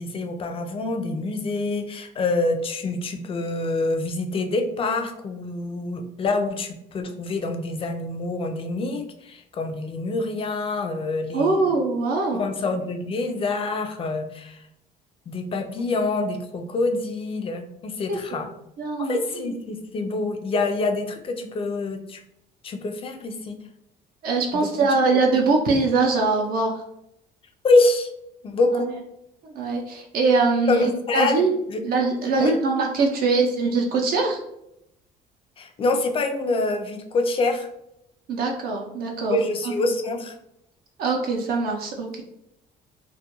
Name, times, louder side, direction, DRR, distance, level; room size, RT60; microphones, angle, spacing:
voice 1, 0.0-11.7 12.3-14.6 15.3-18.5 19.0-22.2 22.6-23.6 24.5-24.7 27.6-28.1 28.4-28.9 30.7-31.8 32.4-32.6 35.6-37.7 39.3-40.3, left 2 dB, 35° left, 5 dB, 0.4 m, -26 dB
voice 2, 11.3-12.4 18.1-18.2 18.8-19.5 24.2-26.8 28.7-28.8 29.4-31.5 31.8-34.4 38.3-39.4 39.6-39.9 41.0-42.2, right 3 dB, 60° right, 1 dB, 0.5 m, -22 dB
2.3 x 2.1 x 2.9 m, 0.79 s
cardioid pair, 110°, 17 cm